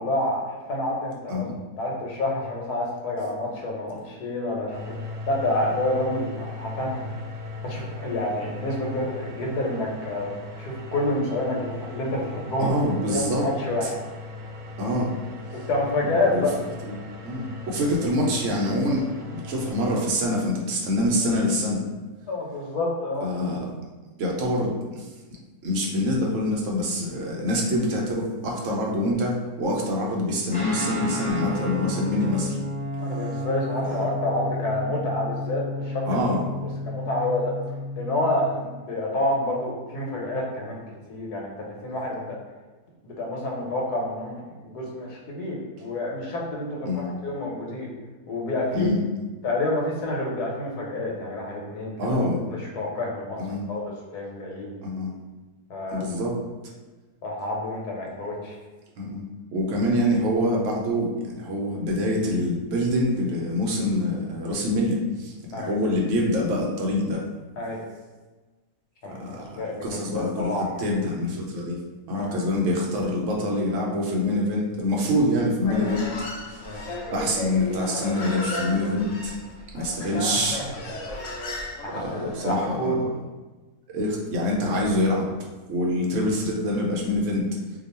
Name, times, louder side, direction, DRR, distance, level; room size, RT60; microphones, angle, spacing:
voice 1, 0.0-1.4 1.8-7.0 7.6-10.3 10.6-12.7 13.1-13.9 15.5-16.5 22.3-23.3 33.0-36.1 36.6-37.5 37.9-40.8 41.1-42.4 43.0-47.9 48.3-48.9 49.4-51.9 52.5-53.4 53.7-54.8 55.7-56.0 57.2-58.6 65.5-65.7 67.6-67.8 69.0-69.2 69.6-69.8 70.1-70.8 72.1-72.3 76.6-76.8 80.3-80.7 81.8-83.0, left 1 dB, 80° left, -2 dB, 1.3 m, -28 dB
sound 1, 4.7-20.1, left 3 dB, 80° right, 1.1 m, -38 dB
voice 2, 12.6-13.4 14.8-15.1 16.3-16.4 16.8-16.9 17.2-19.1 19.3-21.8 23.2-23.6 24.2-25.1 25.6-32.6 33.8-34.0 36.0-36.4 46.9-47.1 48.7-49.0 52.0-52.4 53.4-53.7 54.8-55.1 55.9-56.3 59.0-59.2 59.5-67.2 69.1-71.8 72.1-76.1 76.5-79.3 79.7-80.6 82.0-82.9 83.9-85.3 85.7-87.5, left 1 dB, 60° right, -2 dB, 0.9 m, -25 dB
Guitar, 30.5-38.6, left 1 dB, 10° left, 0.4 m, -32 dB
Human voice, 75.6-82.7, left 2 dB, 65° left, 0.8 m, -34 dB
2.9 x 2.2 x 4.1 m, 1.2 s
omnidirectional pair, 1.7 m